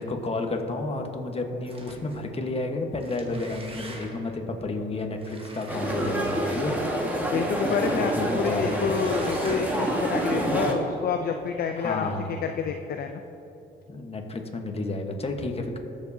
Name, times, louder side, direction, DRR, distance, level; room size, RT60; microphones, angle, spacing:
voice 1, 0.0-6.8 7.9-8.9 11.8-12.3 13.9-15.8, left 2 dB, 30° left, 3 dB, 1.3 m, -31 dB
sound 1, 1.6-2.3 2.9-4.3 5.2-6.9 7.6-8.0 8.6-9.9, right 2 dB, 30° right, 1.4 m, -45 dB
sound 2, 5.7-10.7, right 1 dB, 10° right, 1.7 m, -27 dB
voice 2, 7.3-12.1 12.4-13.2, left 7 dB, 50° left, 6 dB, 0.5 m, -28 dB
20.0 x 7.3 x 2.8 m, 3.0 s
cardioid pair, 90°, 20 cm